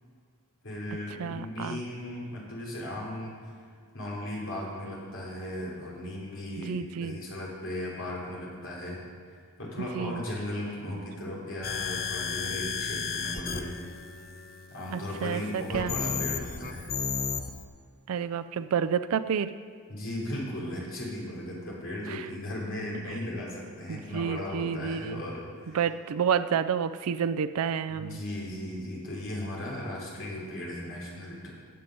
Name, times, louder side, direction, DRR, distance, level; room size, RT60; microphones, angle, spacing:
voice 1, 0.6-3.3 3.9-9.0 9.6-13.8 14.7-16.9 19.9-25.8 27.9-31.5, left 1 dB, 60° left, -4 dB, 3.1 m, -36 dB
voice 2, 1.2-1.8 6.6-7.2 9.8-10.2 14.9-15.9 18.1-19.5 22.1-22.3 23.9-25.2 25.7-28.2, right 7 dB, 75° right, 10 dB, 0.4 m, -30 dB
sound 1, 11.6-17.6, left 6 dB, 40° left, 0.7 m, -34 dB
14.5 x 7.7 x 5.2 m, 2.1 s
head